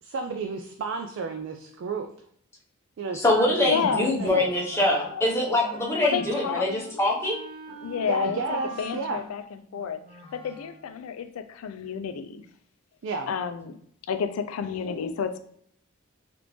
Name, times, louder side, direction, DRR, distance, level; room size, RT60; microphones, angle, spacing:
voice 1, 0.0-2.1 3.0-4.5 8.0-9.2 13.0-13.3, right 4 dB, 55° right, 4 dB, 0.3 m, -32 dB
voice 2, 3.1-7.4, left 1 dB, 10° left, -3 dB, 0.7 m, -24 dB
voice 3, 3.7-5.4 6.0-6.7 7.8-10.0 10.3-12.5 13.3-13.8 14.1-15.4, left 7 dB, 75° left, 9 dB, 0.4 m, -31 dB
Wind instrument woodwind instrument, 4.4-10.9, right 2 dB, 25° right, 1.1 m, -44 dB
3.4 x 2.5 x 3.0 m, 0.65 s
head